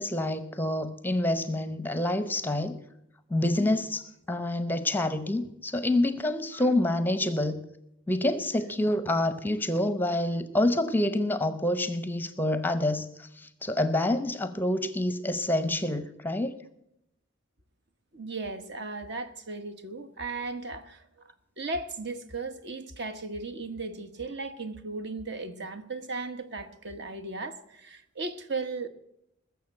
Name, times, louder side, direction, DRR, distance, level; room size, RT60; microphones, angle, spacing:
voice 1, 0.0-2.8 3.3-7.6 8.1-16.6, left 1 dB, 10° left, 0.7 m, -27 dB
voice 2, 18.1-28.9, right 3 dB, 55° right, 1.1 m, -36 dB
20.5 x 7.0 x 7.7 m
head